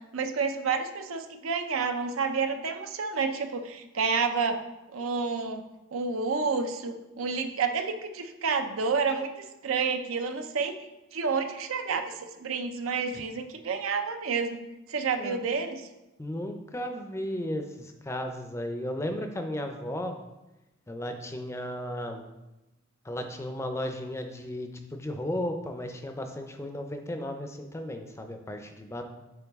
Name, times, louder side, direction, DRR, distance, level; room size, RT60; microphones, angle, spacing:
voice 1, 0.0-4.6 4.9-5.6 5.9-10.7 11.1-14.6 14.9-15.8, right 5 dB, 85° right, 6 dB, 0.6 m, -29 dB
voice 2, 16.2-20.1 20.9-22.2 23.0-29.0, left 1 dB, 15° left, 5 dB, 0.4 m, -35 dB
6.9 x 4.0 x 3.5 m, 0.99 s
head